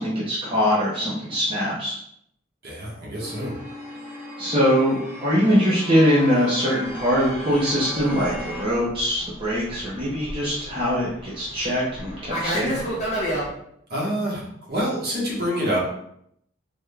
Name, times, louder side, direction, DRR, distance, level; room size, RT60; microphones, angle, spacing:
voice 1, 0.0-2.0 4.4-12.9, equal, 25° right, -8 dB, 0.7 m, -22 dB
voice 2, 2.6-3.5 13.9-14.4 14.7-15.8, equal, 50° right, -5 dB, 1.1 m, -26 dB
sound 1, 3.2-8.6, left 1 dB, 10° right, 1.2 m, -37 dB
Fixed-wing aircraft airplane, 7.0-13.5, equal, 35° left, 1.0 m, -31 dB
3.5 x 2.2 x 3.3 m, 0.72 s
head